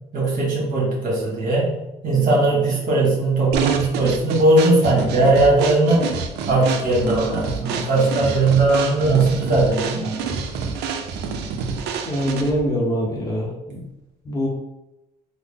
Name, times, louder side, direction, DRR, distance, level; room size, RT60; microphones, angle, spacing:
voice 1, 0.1-1.7 2.0-6.1 6.5-10.2, right 2 dB, 55° right, -4 dB, 1.5 m, -19 dB
sound 1, 3.5-12.7, right 5 dB, 80° right, 0.4 m, -28 dB
voice 2, 12.0-13.8 14.2-14.5, equal, 20° left, -2 dB, 0.7 m, -24 dB
3.7 x 2.0 x 3.4 m, 0.93 s
cardioid pair, 110°, 17 cm